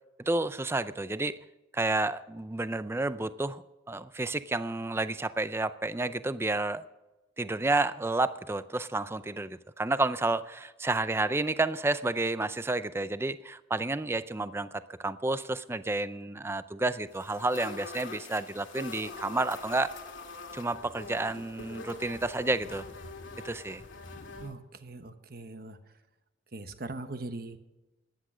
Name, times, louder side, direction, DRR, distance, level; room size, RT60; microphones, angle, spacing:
voice 1, 0.2-1.4 1.7-6.8 7.4-19.9 20.5-22.9 23.4-23.8, right 2 dB, 15° right, 14 dB, 0.4 m, -30 dB
sound 1, 17.1-24.5, left 3 dB, 90° left, 2.1 m, -44 dB
voice 2, 24.4-25.8 26.5-27.6, right 2 dB, 50° right, 9 dB, 1.1 m, -40 dB
14.0 x 10.5 x 6.1 m, 1.0 s
head